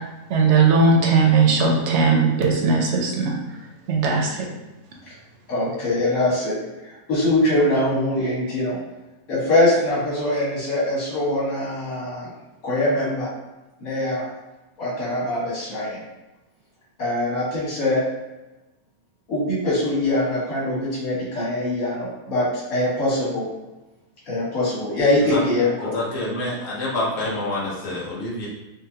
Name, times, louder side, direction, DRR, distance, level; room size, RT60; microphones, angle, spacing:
voice 1, 0.3-3.4 3.9-4.5, right 4 dB, 60° right, 1 dB, 0.9 m, -18 dB
voice 2, 5.5-6.6 6.8-8.8 9.3-12.3 12.6-13.3 13.8-14.3 14.8-16.0 17.0-18.0 19.3-23.5 24.3-25.9, left 1 dB, 80° left, -8 dB, 2.0 m, -23 dB
voice 3, 25.9-28.5, left 2 dB, 50° left, -5 dB, 1.2 m, -27 dB
5.1 x 2.2 x 2.8 m, 1.0 s
omnidirectional pair, 1.5 m